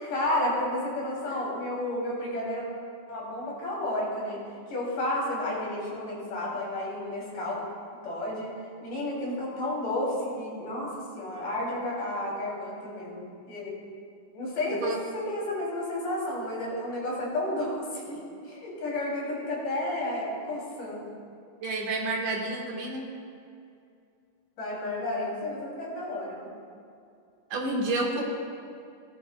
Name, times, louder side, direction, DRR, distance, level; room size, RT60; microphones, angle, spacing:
voice 1, 0.0-2.7 3.1-4.4 4.7-7.6 8.0-8.5 8.8-13.8 14.3-21.1 24.6-26.5, left 1 dB, 85° left, -5 dB, 4.6 m, -32 dB
voice 2, 21.6-23.0 27.5-28.2, right 2 dB, 80° right, -1 dB, 3.1 m, -29 dB
17.5 x 12.5 x 2.3 m, 2.5 s
omnidirectional pair, 3.5 m